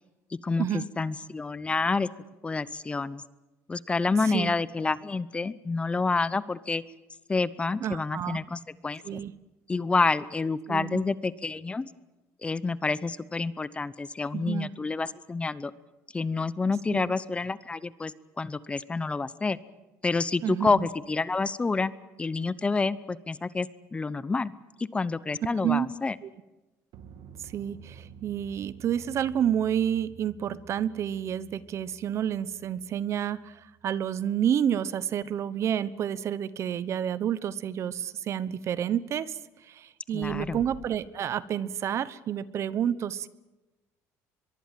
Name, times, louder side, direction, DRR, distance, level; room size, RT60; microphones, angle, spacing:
voice 1, 0.4-2.1 2.4-3.2 3.7-6.8 7.3-9.2 9.7-11.9 12.4-15.7 16.1-18.1 18.4-19.6 20.0-21.9 22.2-24.5 24.8-26.1 40.1-40.6, left 3 dB, 20° left, 18 dB, 0.8 m, -28 dB
voice 2, 4.2-4.5 7.8-8.4 9.0-9.3 10.7-11.0 14.3-14.7 16.9-17.1 20.4-20.9 25.6-25.9 26.2-26.3 27.4-43.3, right 9 dB, 50° right, 17 dB, 1.0 m, -29 dB
sound 1, 26.9-35.3 40.2-40.9, right 6 dB, 70° right, 2.3 m, -51 dB
23.5 x 22.5 x 7.6 m, 1.1 s
cardioid pair, 115°, 6 cm